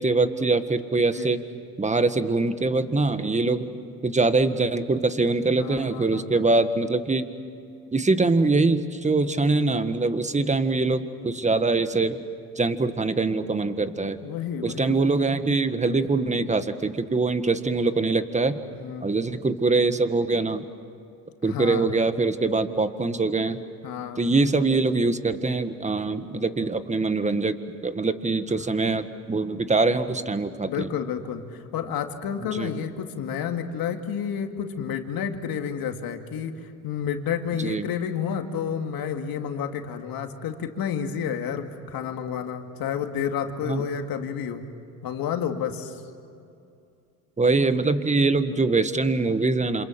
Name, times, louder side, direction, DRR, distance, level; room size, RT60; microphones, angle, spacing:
voice 1, 0.0-1.4 1.8-3.7 4.0-7.3 7.9-12.2 12.6-14.2 14.6-18.5 19.0-20.6 21.4-23.6 24.2-27.5 27.8-30.9 32.5-32.7 37.6-37.9 43.7-43.8 47.4-49.8, right 3 dB, 20° right, 10 dB, 1.7 m, -23 dB
voice 2, 1.0-1.3 5.6-6.4 14.2-15.0 18.7-19.1 21.4-21.9 23.8-24.3 28.5-28.7 30.6-44.7 45.0-46.0, left 7 dB, 65° left, 5 dB, 2.4 m, -30 dB
27.5 x 27.0 x 7.7 m, 2.6 s
supercardioid pair, 75°, 38 cm